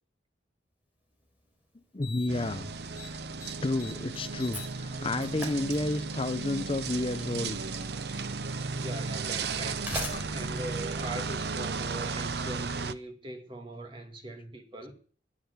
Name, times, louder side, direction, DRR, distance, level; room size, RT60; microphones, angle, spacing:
Slam, 1.2-1.3 2.0-2.5 2.7-3.1 3.4-6.3 7.4-7.5 8.4-8.5 9.5-11.8, left 1 dB, 10° right, 4.7 m, -41 dB
voice 1, 1.9-2.7 3.6-7.6 10.1-10.3, left 2 dB, 30° left, 0.6 m, -31 dB
sound 1, 2.3-12.9, right 4 dB, 60° right, 0.7 m, -35 dB
voice 2, 8.7-9.9 10.3-14.9, right 1 dB, 25° right, 2.1 m, -41 dB
13.0 x 9.6 x 8.1 m
head